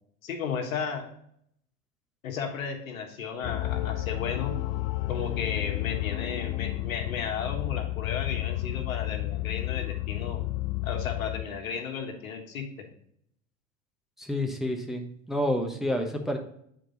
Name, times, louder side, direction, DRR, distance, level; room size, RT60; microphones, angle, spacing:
voice 1, 0.2-1.1 2.2-4.5 5.1-10.4 10.8-12.7, left 6 dB, 85° left, 3 dB, 1.4 m, -34 dB
sound 1, 3.4-11.4, left 16 dB, 50° left, 0.5 m, -31 dB
voice 2, 14.2-16.4, left 1 dB, ahead, 2 dB, 1.0 m, -29 dB
7.8 x 4.5 x 3.9 m, 0.70 s
hypercardioid pair, 85°, 40 cm